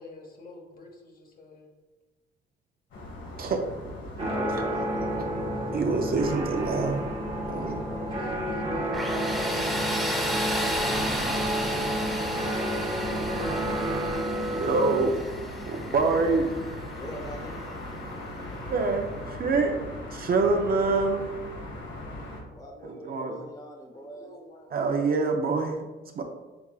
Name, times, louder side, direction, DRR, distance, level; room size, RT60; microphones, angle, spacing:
voice 1, 0.0-1.7 7.9-12.0 13.0-14.0 23.9-24.7 26.0-26.2, left 2 dB, 45° left, 1 dB, 1.1 m, -47 dB
sound 1, 2.9-22.4, left 1 dB, 70° left, 1.2 m, -39 dB
voice 2, 4.2-5.1 17.0-17.6 22.6-24.3, equal, 20° left, 1 dB, 1.1 m, -41 dB
sound 2, 4.2-15.0, right 1 dB, 30° right, 0.9 m, -30 dB
voice 3, 5.7-7.0 7.5-7.8 14.6-15.2 15.7-16.5 18.7-19.8 20.1-21.3 22.8-23.3 24.7-25.9 26.1-26.2, right 4 dB, 50° right, 4 dB, 0.6 m, -25 dB
Tools, 8.9-17.7, equal, ahead, 0.8 m, -33 dB
5.9 x 3.5 x 2.4 m, 1.1 s
cardioid pair, 90°, 20 cm